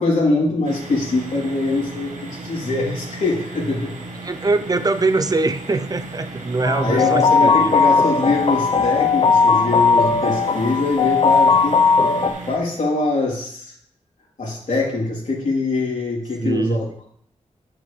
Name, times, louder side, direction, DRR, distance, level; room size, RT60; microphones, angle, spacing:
voice 1, 0.0-4.0 6.8-11.8 12.4-13.7 14.4-17.1, left 2 dB, 75° left, -5 dB, 3.2 m, -23 dB
sound 1, 0.6-12.6, right 2 dB, 75° right, 1.4 m, -36 dB
voice 2, 4.2-7.8 16.4-16.8, right 3 dB, 30° right, 12 dB, 0.5 m, -22 dB
sound 2, 6.6-12.3, left 5 dB, 50° left, 0.8 m, -17 dB
10.0 x 6.6 x 3.3 m, 0.64 s
wide cardioid pair, 135°, 13 cm